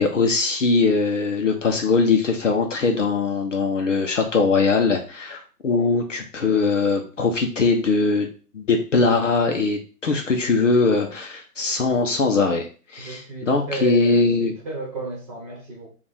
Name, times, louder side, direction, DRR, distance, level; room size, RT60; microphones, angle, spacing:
voice 1, 0.0-8.3 8.5-12.7 12.9-14.5, left 4 dB, 50° left, 3 dB, 0.7 m, -21 dB
voice 2, 13.0-15.9, right 2 dB, 20° right, -4 dB, 1.3 m, -33 dB
4.9 x 2.5 x 3.4 m, 0.38 s
hypercardioid pair, 165°, 48 cm